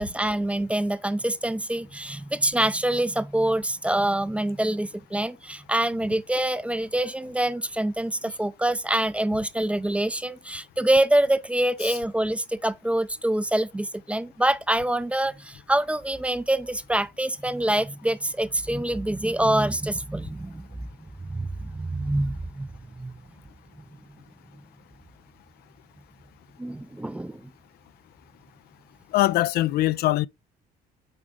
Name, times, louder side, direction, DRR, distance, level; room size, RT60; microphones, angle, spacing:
voice 1, 0.0-20.9 21.3-23.2 26.6-27.4, right 1 dB, 5° right, 0.4 m, -25 dB
voice 2, 29.1-30.3, left 16 dB, 70° left, 0.4 m, -22 dB
8.7 x 3.6 x 3.5 m
cardioid pair, 110°, 17 cm